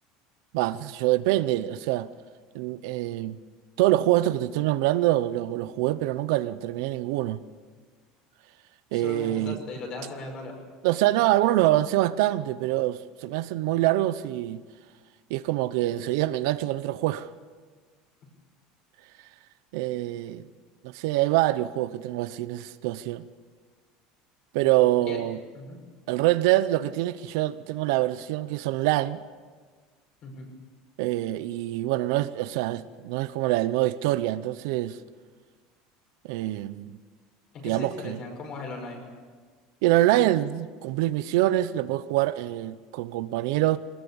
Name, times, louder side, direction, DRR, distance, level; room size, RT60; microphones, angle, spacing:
voice 1, 0.5-2.1 2.5-3.4 3.8-7.4 8.9-9.6 10.8-14.6 15.3-17.3 19.7-20.5 20.8-23.3 24.5-25.4 26.1-29.2 31.0-35.0 36.3-36.9 37.6-38.2 39.8-43.8, right 15 dB, 70° right, 0.8 m, -25 dB
voice 2, 8.9-10.6 24.6-24.7 25.0-25.2 25.5-25.8 30.2-30.5 37.5-39.1, left 3 dB, 40° left, 5.7 m, -38 dB
23.0 x 19.5 x 7.2 m
cardioid pair, 170°, 2 cm